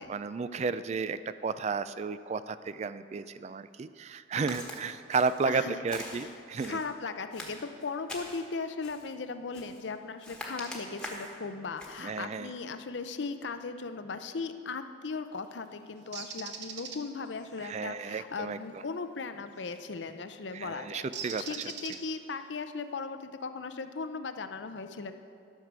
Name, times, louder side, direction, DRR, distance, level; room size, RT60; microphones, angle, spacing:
voice 1, 0.1-6.8 12.0-12.5 17.6-18.6 20.5-21.4, right 4 dB, 35° right, 14 dB, 0.3 m, -33 dB
Walk footsteps, 4.5-4.8 5.1-5.5 5.9-6.9 7.3-8.4 8.8-9.1 9.5-9.9 10.2-11.3 11.8-12.0, left 1 dB, 5° left, 1.4 m, -43 dB
voice 2, 5.5-5.8 6.1-6.3 6.6-21.1 21.4-25.2, left 4 dB, 75° left, 9 dB, 0.6 m, -38 dB
Bird, 16.1-17.0 19.6-19.8 21.1-22.3, right 6 dB, 65° right, 0.9 m, -40 dB
12.5 x 6.6 x 6.1 m, 2.4 s
head